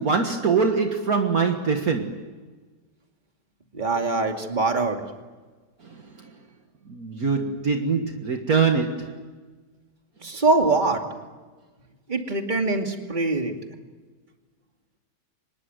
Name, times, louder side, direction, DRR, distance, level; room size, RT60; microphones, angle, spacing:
voice 1, 0.0-2.3 5.8-6.0 6.9-9.2, right 5 dB, 55° right, 2.0 m, -23 dB
voice 2, 3.7-5.0 10.2-11.0 12.1-13.5, right 3 dB, 25° right, 2.6 m, -23 dB
25.0 x 20.5 x 9.4 m
omnidirectional pair, 1.9 m